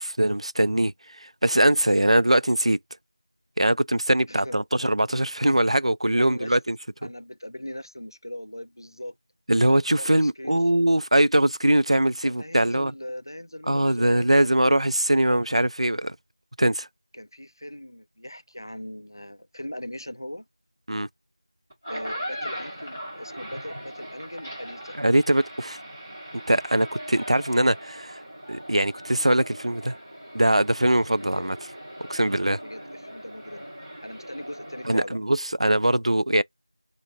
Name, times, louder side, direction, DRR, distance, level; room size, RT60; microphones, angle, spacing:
voice 1, 0.0-2.8 3.6-6.8 9.5-12.9 13.7-16.2 16.6-16.9 20.9-21.1 24.9-25.8 26.5-28.2 28.5-29.9 30.3-31.6 32.1-32.6 34.8-36.4, right 1 dB, 85° right, 0.3 m, -22 dB
voice 2, 6.2-6.6 7.0-9.2 10.0-10.6 12.2-14.5 17.1-20.4 21.9-25.0 31.3-31.5 32.6-33.7 34.0-35.2, left 1 dB, 45° left, 0.4 m, -39 dB
sound 1, 21.7-35.0, equal, 15° right, 1.0 m, -40 dB
4.4 x 2.5 x 2.5 m
figure-of-eight pair, 175°, 3 cm